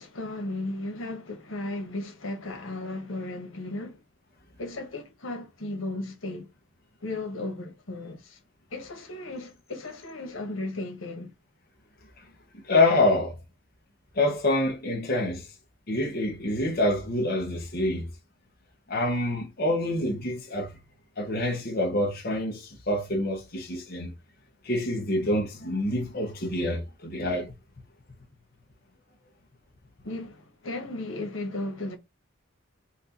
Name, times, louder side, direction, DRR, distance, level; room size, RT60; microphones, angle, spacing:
voice 1, 0.0-4.0 4.6-6.5 7.0-8.4 8.7-11.3 30.0-32.0, left 2 dB, 85° left, 1.5 m, -35 dB
voice 2, 12.7-13.3 14.1-15.5 15.9-18.1 18.9-20.7 21.2-24.1 24.6-27.5, left 1 dB, 50° left, 1.3 m, -26 dB
4.5 x 2.6 x 4.3 m
head